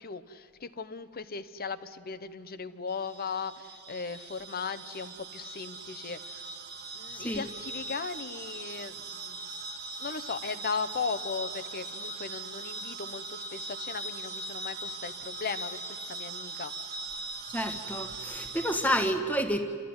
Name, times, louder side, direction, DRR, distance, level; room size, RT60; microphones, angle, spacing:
voice 1, 0.0-6.5 6.9-9.5 10.0-16.7 17.3-17.5, left 5 dB, 45° left, 12 dB, 0.9 m, -37 dB
sound 1, 2.9-19.1, right 2 dB, 50° right, 1.2 m, -40 dB
voice 2, 7.1-7.4 17.5-19.6, equal, 5° left, 5 dB, 1.5 m, -29 dB
30.0 x 13.5 x 9.7 m, 2.3 s
head